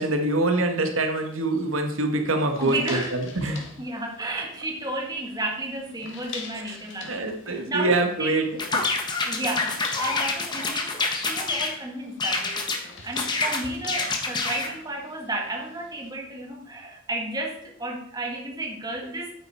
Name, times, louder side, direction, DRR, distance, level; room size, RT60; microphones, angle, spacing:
voice 1, 0.0-3.7 6.6-6.8 7.1-8.8, right 2 dB, 85° right, 5 dB, 1.4 m, -25 dB
sound 1, 2.5-16.1, left 5 dB, 65° left, 1.9 m, -45 dB
voice 2, 2.6-3.1 3.8-8.3 9.3-19.3, right 2 dB, 20° right, 1 dB, 1.7 m, -33 dB
sound 2, 8.6-11.8 12.2-12.8 13.2-14.7, left 3 dB, 20° left, 1.3 m, -27 dB
9.2 x 8.6 x 4.3 m, 0.65 s
head